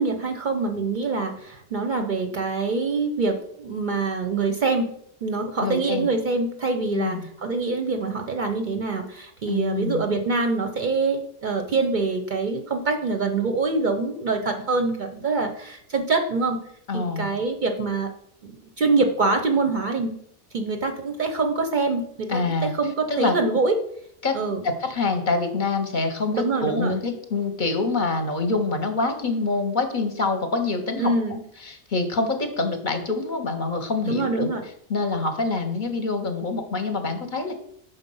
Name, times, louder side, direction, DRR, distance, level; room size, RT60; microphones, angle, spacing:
voice 1, 0.0-4.9 5.2-16.6 16.9-18.1 18.4-20.1 20.5-23.8 24.3-24.6 26.3-27.0 31.0-31.4 34.1-34.6, right 3 dB, 50° right, 5 dB, 0.6 m, -25 dB
voice 2, 5.6-6.1 6.9-7.2 9.5-10.0 16.9-17.3 22.3-22.7 23.1-23.4 24.2-24.4 24.6-31.1 31.6-34.5 34.9-37.5, left 3 dB, 50° left, 5 dB, 0.8 m, -26 dB
5.7 x 4.2 x 5.3 m, 0.69 s
omnidirectional pair, 1.2 m